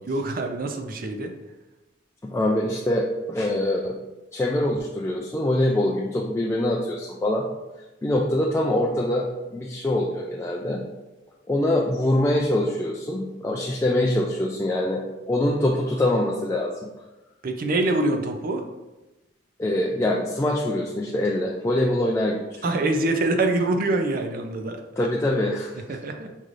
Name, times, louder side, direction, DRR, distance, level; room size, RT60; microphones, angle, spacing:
voice 1, 0.1-1.3 17.4-18.6 22.6-24.8 25.9-26.3, right 2 dB, 50° right, 4 dB, 0.5 m, -25 dB
voice 2, 2.2-3.0 3.3-4.0 4.3-7.5 8.0-9.3 9.5-10.8 11.5-15.0 15.3-16.9 19.6-22.6 25.0-25.8, left 1 dB, 15° left, -2 dB, 0.3 m, -24 dB
5.4 x 3.1 x 2.5 m, 1.1 s
head